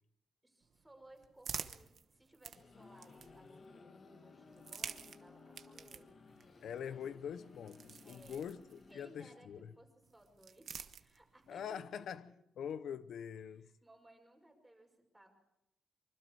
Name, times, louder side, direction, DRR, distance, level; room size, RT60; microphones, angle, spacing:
voice 1, 0.4-6.1 6.8-7.0 8.0-8.5 8.9-12.1 13.6-15.3, right 1 dB, 5° right, 5.6 m, -62 dB
sound 1, 0.6-3.6 4.5-9.1 10.0-11.5, right 7 dB, 55° right, 1.1 m, -50 dB
sound 2, 2.2-9.9, left 4 dB, 40° left, 1.8 m, -59 dB
voice 2, 6.6-9.7 11.5-12.2 12.6-13.7, left 8 dB, 75° left, 0.7 m, -44 dB
25.5 x 24.5 x 4.7 m
wide cardioid pair, 155°, 0 cm